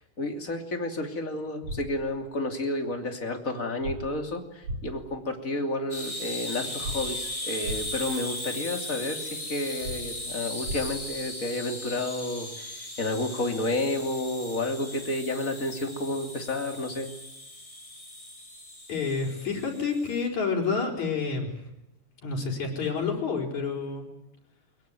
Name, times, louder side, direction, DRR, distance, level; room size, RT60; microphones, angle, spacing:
voice 1, 0.0-17.1, left 2 dB, 25° left, 5 dB, 3.1 m, -31 dB
sound 1, 1.6-1.8 3.8-4.0 4.6-4.8 6.8-7.0 7.6-7.8 9.8-10.0 10.6-10.8, right 1 dB, 75° right, 6.7 m, -33 dB
sound 2, 5.9-20.2, left 1 dB, 10° left, 4.2 m, -38 dB
voice 2, 18.9-21.5 22.2-24.1, left 5 dB, 70° left, 0 dB, 6.3 m, -29 dB
23.5 x 22.0 x 9.3 m, 0.93 s
omnidirectional pair, 3.4 m